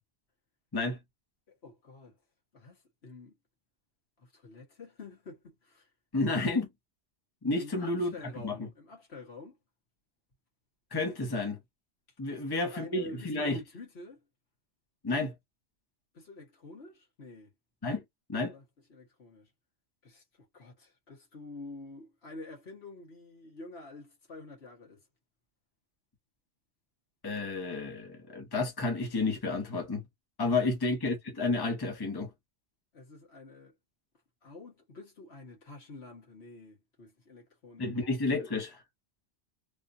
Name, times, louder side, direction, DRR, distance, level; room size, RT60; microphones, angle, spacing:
voice 1, 1.5-2.2 2.5-3.4 4.2-5.9 7.5-9.6 12.3-14.2 16.1-17.5 18.5-18.6 18.9-19.5 20.0-25.0 30.6-30.7 32.9-33.7 34.4-37.9, left 3 dB, 70° left, 1.7 m, -48 dB
voice 2, 6.1-6.7 7.4-8.1 8.4-8.7 10.9-11.6 12.2-13.6 15.0-15.3 17.8-18.0 18.3-18.5 27.2-30.0 30.4-32.3 37.8-38.8, left 3 dB, 20° left, 1.1 m, -31 dB
3.6 x 2.6 x 2.6 m
omnidirectional pair, 1.1 m